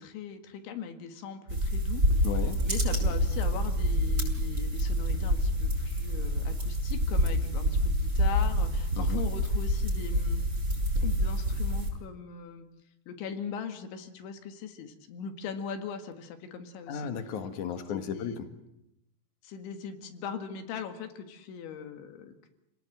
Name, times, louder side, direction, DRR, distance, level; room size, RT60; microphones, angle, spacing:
voice 1, 0.0-2.3 2.7-10.4 11.0-12.7 13.1-17.1 17.9-18.4 19.4-22.5, left 7 dB, 75° left, 6 dB, 4.1 m, -40 dB
sound 1, 1.5-11.9, equal, 20° right, 7.5 m, -27 dB
voice 2, 2.2-2.6 9.0-9.2 16.9-18.5, left 7 dB, 55° left, 7 dB, 2.5 m, -34 dB
28.5 x 19.0 x 7.9 m, 0.87 s
omnidirectional pair, 5.5 m